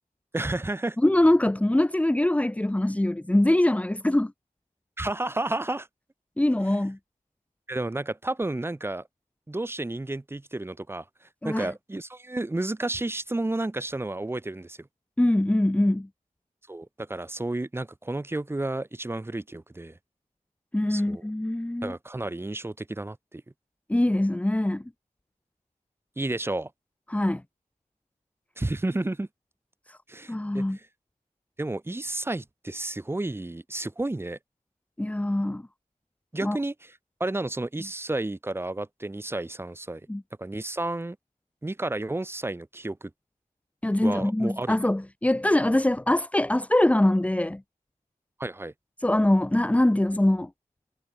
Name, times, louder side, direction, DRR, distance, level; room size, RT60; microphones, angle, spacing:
voice 1, 0.3-1.0 5.0-5.9 7.7-9.0 9.5-11.0 11.4-14.9 16.7-20.0 20.9-21.2 21.8-23.4 26.2-26.7 28.6-29.3 30.1-30.9 31.6-34.4 36.3-36.9 37.2-40.0 40.4-41.2 41.6-43.1 44.0-44.8 48.4-48.7, right 2 dB, 15° right, 4.5 m, -31 dB
voice 2, 1.0-4.3 6.4-7.0 11.4-11.7 15.2-16.1 20.7-21.9 23.9-24.8 27.1-27.4 29.9-30.0 30.3-30.8 35.0-35.6 36.4-36.6 40.1-40.2 43.8-47.6 49.0-50.5, left 1 dB, 10° left, 2.4 m, -23 dB
wide cardioid pair, 170°, 15 cm